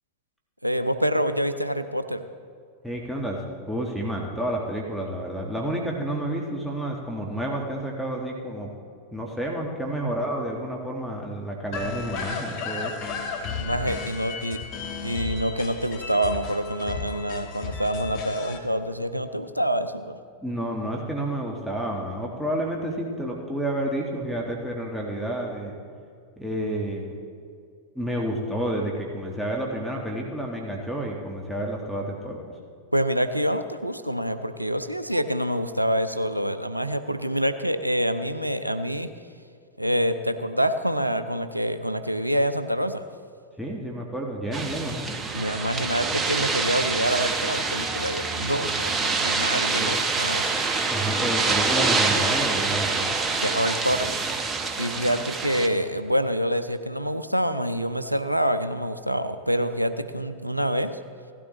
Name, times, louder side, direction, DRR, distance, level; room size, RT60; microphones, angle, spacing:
voice 1, 0.6-2.2 13.6-14.6 15.0-20.2 32.9-39.1 39.8-43.0 45.3-50.5 53.4-54.1 54.8-61.0, equal, 90° right, 11 dB, 0.5 m, -26 dB
voice 2, 2.8-8.7 9.1-13.0 20.4-25.8 26.4-27.1 27.9-32.5 43.6-45.0 49.7-49.9 50.9-53.1, right 1 dB, 5° right, -2 dB, 1.5 m, -30 dB
sound 1, 11.7-18.6, left 5 dB, 45° left, 1.5 m, -34 dB
sound 2, 44.5-55.7, right 4 dB, 20° right, 1.0 m, -26 dB
16.5 x 12.0 x 3.1 m, 2.3 s
figure-of-eight pair, 90°, 0 cm